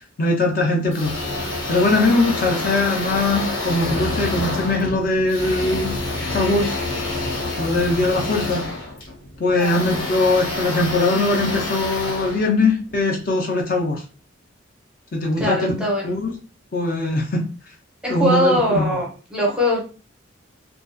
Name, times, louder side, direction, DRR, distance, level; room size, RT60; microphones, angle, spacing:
voice 1, 0.2-1.1 1.7-6.0 6.3-6.8 7.6-8.7 9.4-14.0 15.1-16.3 16.7-17.4 18.1-18.8, left 2 dB, 45° left, 0 dB, 0.4 m, -21 dB
sound 1, 0.9-13.1, left 2 dB, 80° left, 0.9 m, -28 dB
voice 2, 9.5-10.0 15.4-16.2 18.0-19.8, left 1 dB, 5° right, -3 dB, 0.6 m, -22 dB
2.3 x 2.3 x 2.5 m, 0.37 s
head